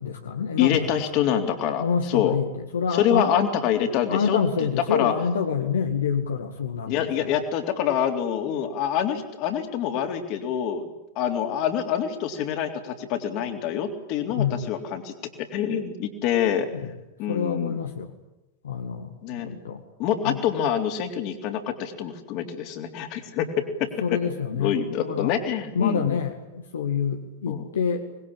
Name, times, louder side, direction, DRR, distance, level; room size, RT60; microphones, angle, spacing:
voice 1, 0.0-0.9 1.8-3.3 4.1-7.1 14.3-14.7 16.7-16.9 17.3-18.1 18.6-19.1 19.4-19.8 20.3-20.4 24.0-25.3 25.7-28.1, left 6 dB, 70° left, 3 dB, 2.1 m, -27 dB
voice 2, 0.6-2.4 2.9-5.1 6.9-16.7 17.2-17.7 19.2-19.5 20.0-24.2 24.5-26.2 27.5-27.7, left 9 dB, 40° left, 5 dB, 3.6 m, -26 dB
25.5 x 20.5 x 8.8 m, 0.95 s
figure-of-eight pair, 90°, 0 cm